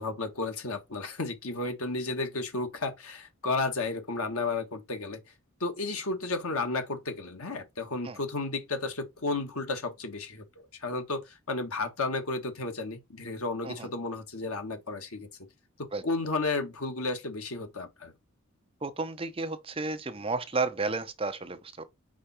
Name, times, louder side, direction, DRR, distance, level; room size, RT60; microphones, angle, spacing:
voice 1, 0.0-5.2 5.6-15.3 16.0-18.1, left 3 dB, 80° left, 1.5 m, -33 dB
voice 2, 18.8-21.8, right 3 dB, 25° right, 0.6 m, -32 dB
5.0 x 4.5 x 4.2 m
head